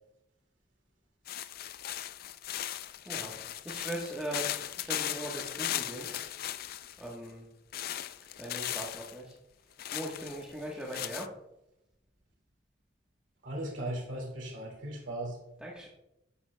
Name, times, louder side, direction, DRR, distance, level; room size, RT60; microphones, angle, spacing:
sound 1, 1.3-7.1 7.7-9.1 9.8-11.3, left 12 dB, 55° left, 0.4 m, -37 dB
voice 1, 3.0-4.5 4.8-6.1 7.0-7.5 8.4-9.3 9.9-11.3 15.6-15.9, right 1 dB, 5° right, -5 dB, 1.1 m, -39 dB
voice 2, 13.4-15.4, right 1 dB, 80° right, 1 dB, 2.2 m, -37 dB
10.5 x 9.4 x 2.2 m, 0.87 s
head